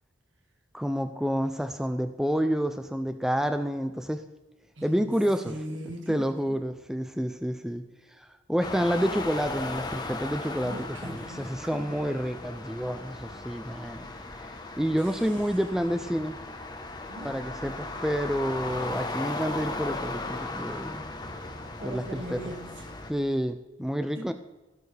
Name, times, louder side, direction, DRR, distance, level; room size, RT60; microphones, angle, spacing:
voice 1, 0.7-4.2 4.8-5.6 6.1-7.8 8.2-14.0 14.4-16.4 17.2-21.1 21.8-22.4 23.1-24.3, equal, ahead, 8 dB, 0.4 m, -29 dB
voice 2, 4.8-5.1 5.4-6.2 10.6-12.1 15.0-15.4 17.1-17.4 21.6-23.0 24.2-24.3, equal, 75° right, 3 dB, 2.0 m, -40 dB
sound 1, 8.6-23.1, left 2 dB, 20° left, 1.0 m, -37 dB
16.5 x 7.0 x 3.3 m, 1.1 s
head